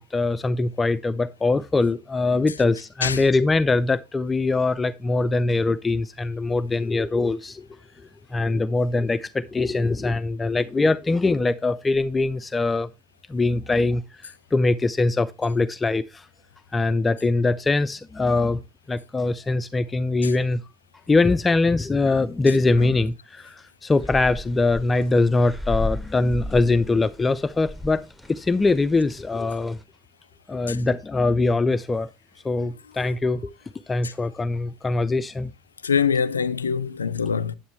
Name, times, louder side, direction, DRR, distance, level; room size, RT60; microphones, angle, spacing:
voice 1, 0.0-7.7 8.3-12.9 13.3-16.3 16.7-18.6 18.9-20.6 21.1-28.0 28.3-29.8 30.5-32.1 32.4-33.5 33.9-35.5, left 3 dB, 20° left, 0.4 m, -22 dB
sound 1, 24.0-29.8, left 1 dB, 5° left, 1.0 m, -35 dB
voice 2, 35.8-37.5, left 6 dB, 85° left, 0.4 m, -23 dB
9.4 x 8.9 x 3.1 m
figure-of-eight pair, 75°, 0 cm